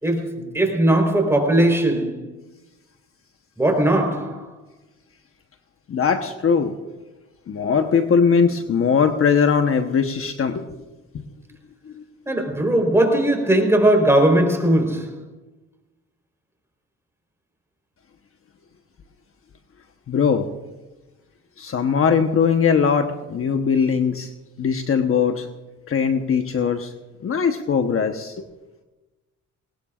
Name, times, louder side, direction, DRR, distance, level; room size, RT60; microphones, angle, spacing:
voice 1, 0.0-2.2 3.6-4.5 12.3-15.2, right 1 dB, 10° right, 4.0 m, -19 dB
voice 2, 5.9-6.8 7.5-10.7 11.9-12.0 20.1-20.5 21.6-24.3 24.6-25.5 25.9-26.9 27.2-28.4, left 6 dB, 45° left, 1.1 m, -20 dB
19.5 x 19.0 x 2.5 m
cardioid pair, 90°, 30 cm